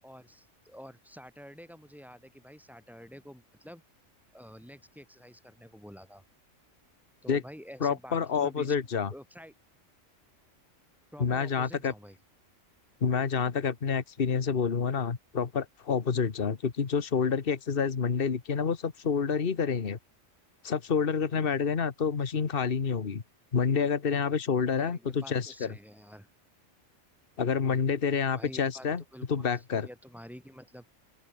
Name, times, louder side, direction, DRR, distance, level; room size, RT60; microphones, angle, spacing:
voice 1, 0.0-3.8 4.3-6.2 7.2-8.8 9.1-9.5 11.1-12.2 24.7-26.3 28.3-30.9, equal, ahead, 7.0 m, -48 dB
voice 2, 7.8-9.1 11.2-11.9 13.0-20.0 20.6-23.2 23.5-25.7 27.4-29.0 29.3-29.9, left 6 dB, 45° left, 1.6 m, -28 dB
open air
omnidirectional pair, 1.3 m